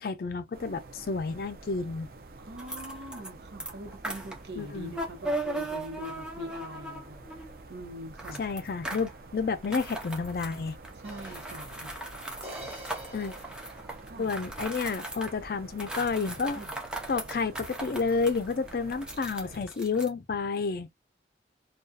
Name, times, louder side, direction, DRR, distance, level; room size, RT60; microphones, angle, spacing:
voice 1, 0.0-2.1 4.6-5.0 8.4-10.7 13.1-13.3 14.2-16.6 17.1-20.9, left 4 dB, 55° left, 0.4 m, -30 dB
sound 1, 0.5-19.6, right 2 dB, 55° right, 0.4 m, -49 dB
voice 2, 2.4-8.4 10.9-11.9 14.1-14.3 16.5-16.7, equal, 75° right, 0.9 m, -43 dB
sound 2, 2.6-3.3 3.6-7.6 8.2-9.2 9.6-15.4 15.7-20.1, right 1 dB, 5° right, 0.6 m, -38 dB
sound 3, 11.0-14.4, right 1 dB, 35° right, 1.2 m, -47 dB
2.6 x 2.3 x 2.3 m
head